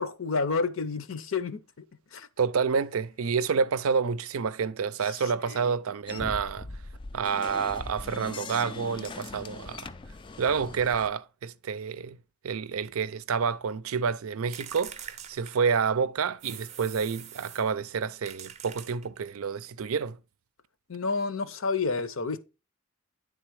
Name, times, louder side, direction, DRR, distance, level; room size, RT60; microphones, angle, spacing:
voice 1, 0.0-1.6 2.1-2.3 5.0-5.7 20.9-22.4, left 4 dB, 70° left, 0.7 m, -30 dB
voice 2, 2.4-6.7 7.1-9.9 10.4-12.2 12.4-20.2, right 6 dB, 80° right, 0.5 m, -29 dB
sound 1, 6.1-11.1, left 3 dB, 25° left, 0.3 m, -40 dB
sound 2, 14.5-16.0 16.4-17.7 18.2-19.4, right 8 dB, 30° right, 0.5 m, -44 dB
9.7 x 3.8 x 4.7 m
head